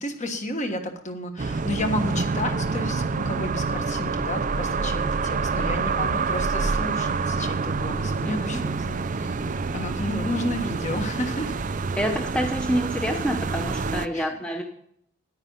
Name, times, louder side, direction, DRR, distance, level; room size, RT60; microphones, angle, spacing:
voice 1, 0.0-9.4 9.7-11.6 14.1-14.4, left 1 dB, 35° left, 5 dB, 1.4 m, -32 dB
sound 1, 1.4-14.1, right 4 dB, 35° right, 0.4 m, -27 dB
voice 2, 8.2-8.6 12.0-14.6, equal, 5° left, 3 dB, 0.8 m, -27 dB
10.0 x 9.5 x 5.6 m, 0.71 s
head